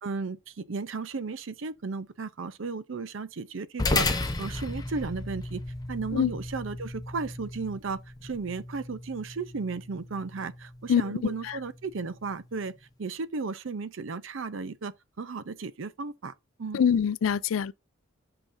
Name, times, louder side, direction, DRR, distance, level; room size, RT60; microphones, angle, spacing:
voice 1, 0.0-5.6 5.9-12.7 13.0-16.3 16.6-16.8, right 4 dB, 65° right, 0.6 m, -35 dB
sound 1, 3.8-12.5, left 2 dB, 20° left, 0.8 m, -34 dB
voice 2, 10.9-11.6 16.7-17.7, left 7 dB, 70° left, 0.4 m, -25 dB
8.7 x 5.9 x 2.6 m
head